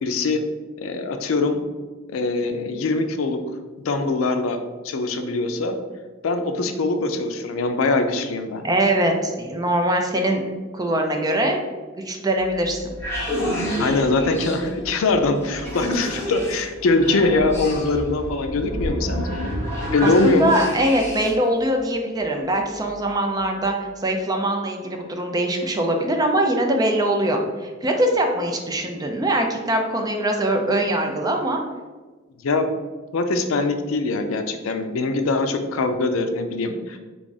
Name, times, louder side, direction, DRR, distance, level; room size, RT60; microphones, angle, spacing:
voice 1, 0.0-0.4 0.8-1.6 2.1-3.4 3.8-4.6 4.8-5.8 6.2-8.6 13.8-19.3 19.9-20.5 32.4-32.7 33.1-37.0, left 3 dB, 85° left, 7 dB, 0.4 m, -22 dB
voice 2, 8.6-10.4 10.7-11.6 12.0-12.9 20.0-23.7 24.0-31.6, right 1 dB, 20° right, 3 dB, 0.4 m, -22 dB
sound 1, 12.4-21.5, equal, 15° left, 0.9 m, -29 dB
3.5 x 2.4 x 3.9 m, 1.3 s
head